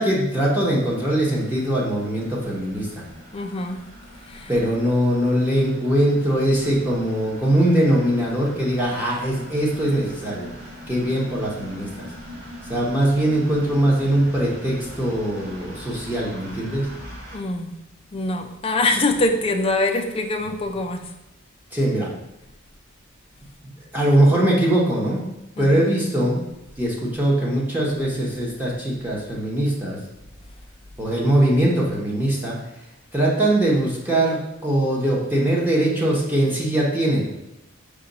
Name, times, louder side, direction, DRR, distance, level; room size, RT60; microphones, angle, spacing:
voice 1, 0.0-3.1 4.5-10.5 10.9-12.1 12.7-16.9 21.7-22.1 23.9-25.2 25.6-26.4 26.8-30.0 31.0-32.6 33.1-37.3, right 1 dB, 10° right, -5 dB, 0.7 m, -21 dB
sound 1, 0.7-17.4, equal, 70° right, 1.4 m, -41 dB
voice 2, 3.3-3.8 4.2-4.5 17.3-17.7 18.1-21.1 25.6-25.9, left 2 dB, 30° left, 4 dB, 0.4 m, -24 dB
4.8 x 2.2 x 3.9 m, 0.92 s
head